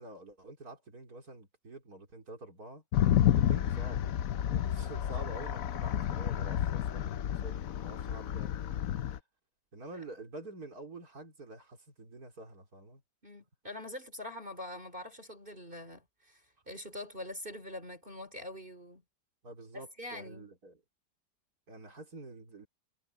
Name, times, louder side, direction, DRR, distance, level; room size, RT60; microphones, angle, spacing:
voice 1, 0.0-2.8 3.4-8.5 9.7-13.0 19.4-20.8 21.7-22.7, right 2 dB, 50° right, 4.5 m, -48 dB
sound 1, 2.9-9.2, left 11 dB, 65° left, 0.9 m, -30 dB
voice 2, 13.2-19.0 19.7-20.5, left 1 dB, 25° right, 3.8 m, -44 dB
omnidirectional pair, 2.1 m